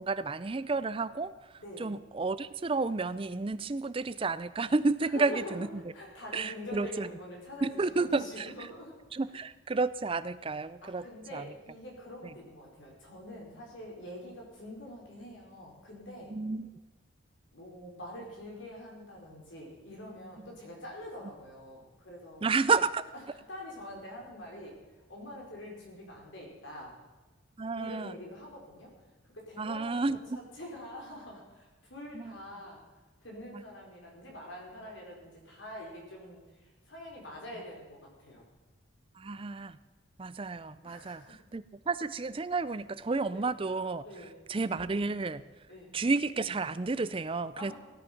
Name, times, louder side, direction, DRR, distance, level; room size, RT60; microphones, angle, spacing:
voice 1, 0.0-1.3 1.8-5.8 6.3-7.1 7.6-8.5 9.1-11.4 16.3-16.7 22.4-23.0 27.6-28.1 29.6-30.4 32.1-32.4 33.5-33.6 39.2-39.8 40.2-44.0 44.5-45.4 45.9-47.7, right 3 dB, 25° right, 15 dB, 0.4 m, -31 dB
voice 2, 1.6-1.9 5.0-5.7 5.9-9.0 10.8-16.3 17.5-22.5 23.5-24.7 25.1-26.9 27.8-28.9 29.3-32.8 33.2-38.4 40.8-41.3 43.3-43.4 44.0-44.3 45.7-45.9 47.6-47.7, left 1 dB, 60° left, -1 dB, 4.5 m, -45 dB
16.5 x 9.6 x 5.9 m, 1.2 s
head